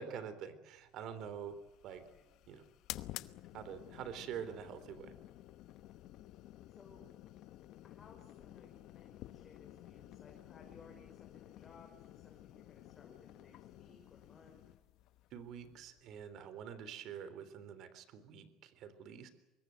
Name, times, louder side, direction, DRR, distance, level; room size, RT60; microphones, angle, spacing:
voice 1, 0.0-1.6 1.8-2.0 2.5-2.6 3.5-5.1 15.3-19.3, right 8 dB, 50° right, 13 dB, 3.6 m, -46 dB
sound 1, 1.0-16.3, left 15 dB, 55° left, 1.0 m, -53 dB
voice 2, 1.9-2.3 4.4-4.8 6.7-7.1 7.8-14.6, left 4 dB, 20° left, 1 dB, 5.2 m, -61 dB
25.0 x 22.0 x 7.7 m, 1.0 s
cardioid pair, 140°, 0 cm